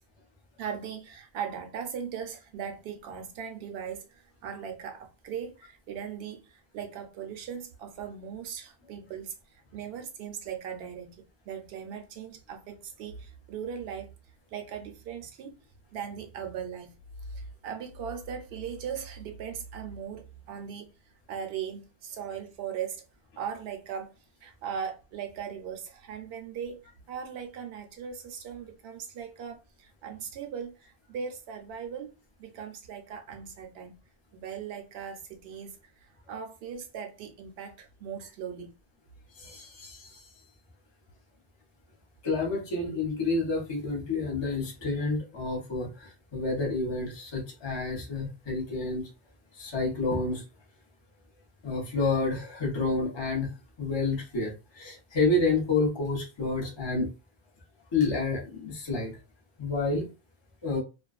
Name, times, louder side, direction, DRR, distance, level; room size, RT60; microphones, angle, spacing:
voice 1, 0.6-14.1 14.5-15.6 15.9-17.0 17.3-20.9 21.3-23.0 23.4-24.1 24.4-26.8 27.1-32.1 32.4-34.0 34.3-38.7, right 7 dB, 65° right, 0.8 m, -39 dB
voice 2, 39.4-40.3 42.2-49.1 49.5-50.4 51.6-57.1 57.9-59.2 59.6-60.1 60.6-60.8, left 3 dB, 30° left, 0.7 m, -29 dB
2.4 x 2.2 x 2.3 m
omnidirectional pair, 1.1 m